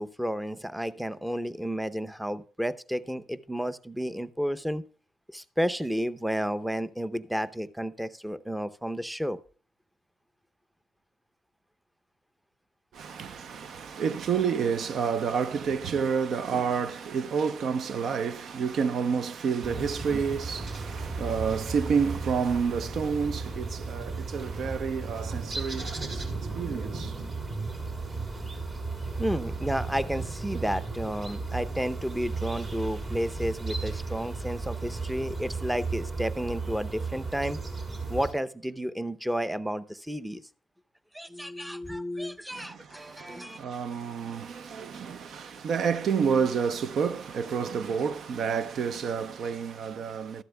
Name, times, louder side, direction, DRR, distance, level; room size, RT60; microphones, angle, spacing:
voice 1, 0.0-4.8 5.3-9.4 29.2-37.6 38.1-40.4 41.1-43.6, equal, 5° right, 0.6 m, -32 dB
voice 2, 12.9-27.1 42.5-50.4, right 6 dB, 60° right, 0.6 m, -29 dB
sound 1, 19.6-38.3, right 3 dB, 45° right, 3.7 m, -35 dB
13.0 x 11.5 x 2.2 m
cardioid pair, 90°, 0 cm